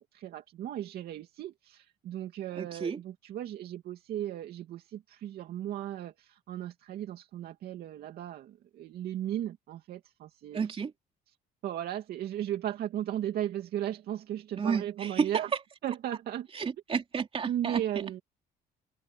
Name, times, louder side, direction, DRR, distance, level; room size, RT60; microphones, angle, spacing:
voice 1, 0.0-10.6 11.6-15.5 15.8-16.5 17.4-18.2, right 11 dB, 65° right, 2.5 m, -36 dB
voice 2, 2.5-3.0 10.5-10.9 14.6-15.3 16.5-18.0, right 6 dB, 35° right, 3.0 m, -31 dB
cardioid pair, 110°, 17 cm